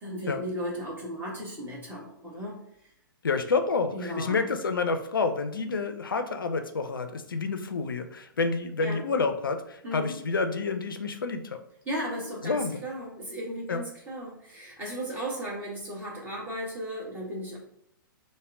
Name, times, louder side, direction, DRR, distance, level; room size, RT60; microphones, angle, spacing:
voice 1, 0.0-2.6 3.9-4.4 8.8-9.0 9.8-10.1 11.9-17.6, equal, 15° right, -4 dB, 1.2 m, -35 dB
voice 2, 3.2-11.6 12.4-12.8 13.7-13.8, left 4 dB, 70° left, 8 dB, 0.4 m, -29 dB
3.5 x 2.1 x 3.5 m, 0.73 s
figure-of-eight pair, 115°, 12 cm